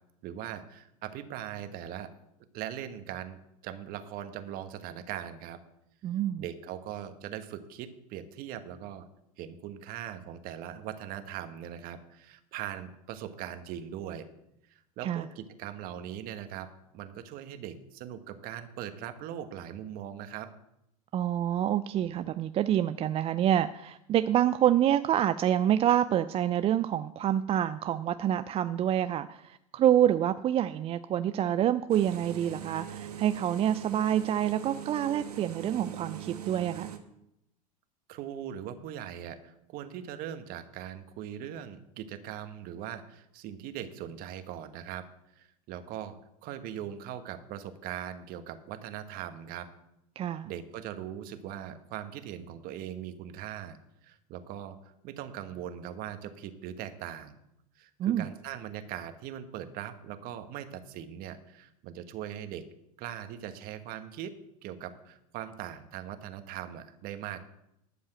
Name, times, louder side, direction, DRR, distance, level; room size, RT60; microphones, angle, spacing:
voice 1, 0.2-2.1 2.5-5.6 6.4-9.1 9.4-14.3 14.7-20.5 38.1-45.1 45.3-49.7 50.4-53.8 54.0-54.8 55.0-57.4 57.8-62.7 63.0-67.4, right 10 dB, 50° right, 9 dB, 1.3 m, -40 dB
voice 2, 6.0-6.4 15.0-15.3 21.1-36.9 50.2-50.5 58.0-58.3, right 11 dB, 30° right, 12 dB, 0.4 m, -27 dB
sound 1, 31.9-37.0, right 9 dB, 85° right, 1.1 m, -41 dB
12.0 x 5.5 x 7.8 m, 0.83 s
hypercardioid pair, 90°, 19 cm